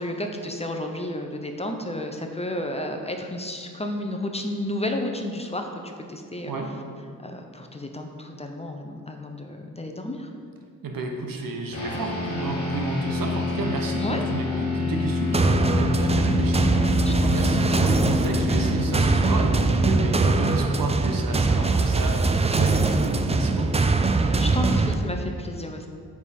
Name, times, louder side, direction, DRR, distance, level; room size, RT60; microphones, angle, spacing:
voice 1, 0.0-5.8 6.1-6.5 7.2-10.3 14.0-14.2 17.0-17.4 24.4-25.9, left 1 dB, 20° left, 4 dB, 0.6 m, -32 dB
voice 2, 10.8-23.8, right 3 dB, 80° right, 2 dB, 0.9 m, -30 dB
sound 1, 11.7-21.4, left 3 dB, 45° left, 1.4 m, -28 dB
sound 2, 15.3-24.9, right 3 dB, 20° right, 0.3 m, -22 dB
9.2 x 3.6 x 4.2 m, 2.2 s
cardioid pair, 75°, 33 cm